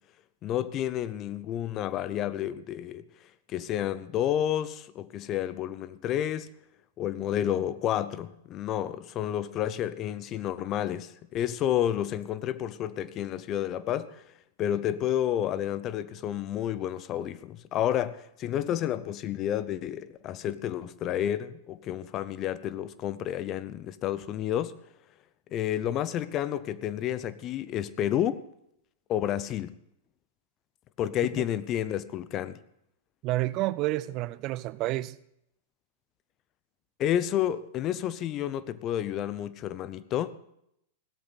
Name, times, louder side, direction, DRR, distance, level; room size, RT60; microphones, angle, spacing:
voice 1, 0.4-6.5 7.0-14.3 14.6-24.8 25.5-28.4 29.1-29.7 31.0-32.6 37.0-40.3, left 11 dB, 35° left, 0.7 m, -30 dB
voice 2, 33.2-35.2, right 17 dB, 40° right, 0.6 m, -29 dB
16.5 x 13.0 x 4.1 m
hypercardioid pair, 105°, 0 cm